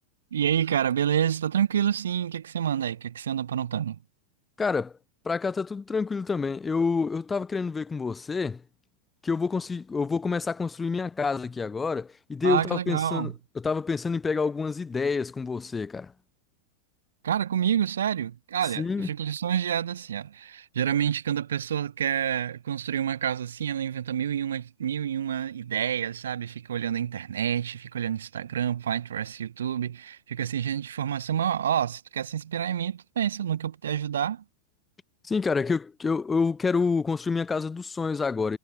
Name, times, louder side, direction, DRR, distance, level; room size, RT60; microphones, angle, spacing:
voice 1, 0.3-4.0 12.4-13.3 17.2-34.4, right 9 dB, 65° right, 1.1 m, -28 dB
voice 2, 4.6-4.9 5.2-8.6 9.2-16.1 18.8-19.1 35.2-38.6, left 4 dB, 15° left, 0.4 m, -28 dB
figure-of-eight pair, 90°, 0 cm